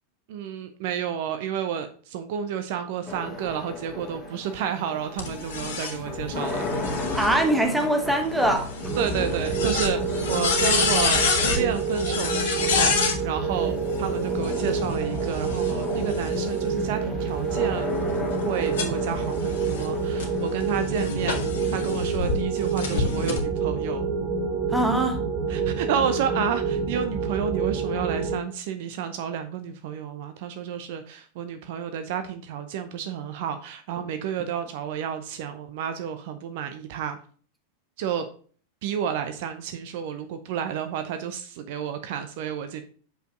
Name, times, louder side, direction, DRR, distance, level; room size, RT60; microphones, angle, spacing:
voice 1, 0.3-6.6 7.0-7.1 9.0-10.0 10.3-12.9 13.2-17.9 18.4-24.0 25.5-37.2 38.0-38.3 38.8-42.8, right 8 dB, 50° right, 9 dB, 0.7 m, -31 dB
sound 1, 3.1-22.1, left 2 dB, 10° left, 2.4 m, -36 dB
sound 2, 5.2-13.2 14.3-16.7 17.3-22.3 22.8-23.4, left 4 dB, 60° left, 1.4 m, -29 dB
voice 2, 7.1-8.7 24.7-25.2, right 1 dB, 5° right, 4 dB, 1.3 m, -22 dB
sound 3, 8.8-28.4, right 5 dB, 25° right, 1.0 m, -28 dB
6.5 x 5.4 x 3.8 m, 0.42 s
figure-of-eight pair, 90°, 0 cm